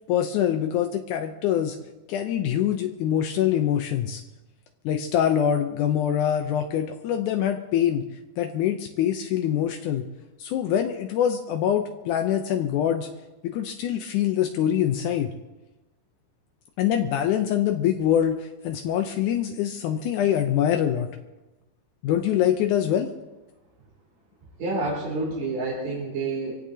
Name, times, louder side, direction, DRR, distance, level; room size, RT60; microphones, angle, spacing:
voice 1, 0.1-1.8 2.1-4.2 4.8-8.0 8.4-10.0 10.4-13.1 13.4-15.3 16.8-21.1 22.0-23.1, left 10 dB, 80° left, 5 dB, 1.8 m, -24 dB
voice 2, 24.6-26.5, right 3 dB, 70° right, -6 dB, 6.0 m, -28 dB
25.0 x 17.0 x 2.8 m, 1.1 s
omnidirectional pair, 4.5 m